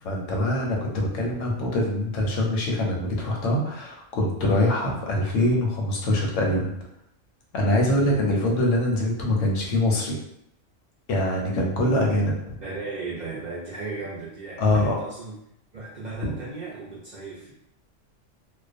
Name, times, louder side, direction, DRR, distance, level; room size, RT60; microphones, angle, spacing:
voice 1, 0.0-6.7 7.5-10.2 11.1-12.6 14.6-15.0, left 1 dB, 85° left, -1 dB, 1.0 m, -24 dB
voice 2, 7.9-8.2 12.6-15.3 15.7-17.5, right 3 dB, 60° right, -7 dB, 0.5 m, -36 dB
2.4 x 2.1 x 2.4 m, 0.77 s
omnidirectional pair, 1.3 m